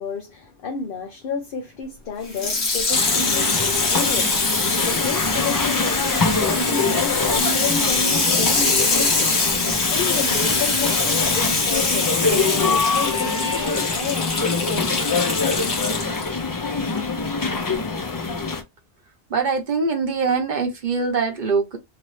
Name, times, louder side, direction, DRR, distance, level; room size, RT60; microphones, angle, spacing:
voice 1, 0.0-4.3 4.8-9.3 9.9-14.9, left 5 dB, 60° left, 0.8 m, -31 dB
Water tap faucet / Sink (filling or washing), 2.3-16.3 17.0-17.1, left 3 dB, 85° left, 1.5 m, -23 dB
sound 1, 2.9-18.6, left 4 dB, 35° left, 0.3 m, -24 dB
voice 2, 19.3-21.8, right 4 dB, 50° right, 0.9 m, -23 dB
3.0 x 2.7 x 3.0 m
omnidirectional pair, 1.1 m